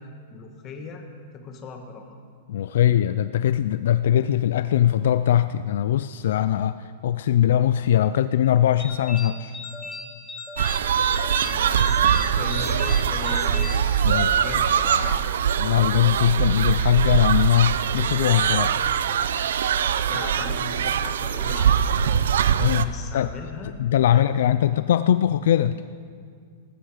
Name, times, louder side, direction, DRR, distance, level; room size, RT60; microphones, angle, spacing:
voice 1, 0.3-1.0 1.3-2.2 11.1-15.2 20.1-22.1 22.8-23.8 24.1-24.7, left 5 dB, 20° left, 4 dB, 1.6 m, -38 dB
voice 2, 2.5-9.6 14.0-14.3 15.6-18.8 22.6-22.9 23.1-23.3 23.8-25.7, left 11 dB, 65° left, 13 dB, 0.4 m, -21 dB
sound 1, 8.8-14.6, left 3 dB, 5° left, 1.3 m, -37 dB
sound 2, 10.6-22.9, right 8 dB, 90° right, 0.7 m, -22 dB
19.0 x 14.5 x 5.0 m, 2.1 s
supercardioid pair, 170°, 0 cm